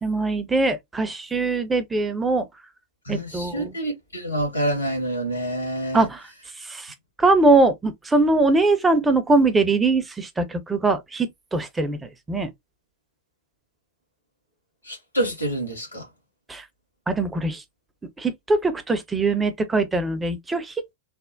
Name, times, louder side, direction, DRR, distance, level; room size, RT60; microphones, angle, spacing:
voice 1, 0.0-2.5 3.1-3.7 5.9-6.2 6.6-12.5 16.5-16.6 17.1-17.6 18.2-20.9, right 3 dB, 10° right, 0.6 m, -22 dB
voice 2, 3.1-6.1 14.8-16.1, right 1 dB, 80° left, 1.8 m, -27 dB
3.3 x 2.0 x 2.5 m
figure-of-eight pair, 90°, 0 cm